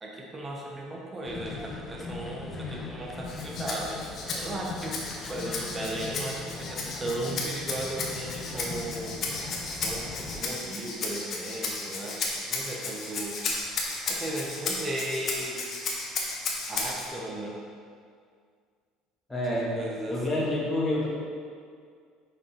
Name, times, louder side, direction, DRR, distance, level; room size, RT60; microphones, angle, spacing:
voice 1, 0.0-9.2 9.7-13.4 14.1-15.6 16.7-17.6 19.5-20.6, right 1 dB, 20° right, -2 dB, 0.9 m, -36 dB
sound 1, 1.2-10.4, left 4 dB, 20° left, 0.6 m, -40 dB
Rattle (instrument), 3.2-17.1, left 3 dB, 40° left, 1.1 m, -34 dB
voice 2, 19.3-19.7 20.1-21.1, left 1 dB, 5° left, -7 dB, 1.6 m, -27 dB
5.4 x 5.3 x 4.3 m, 2.1 s
cardioid pair, 125°, 0 cm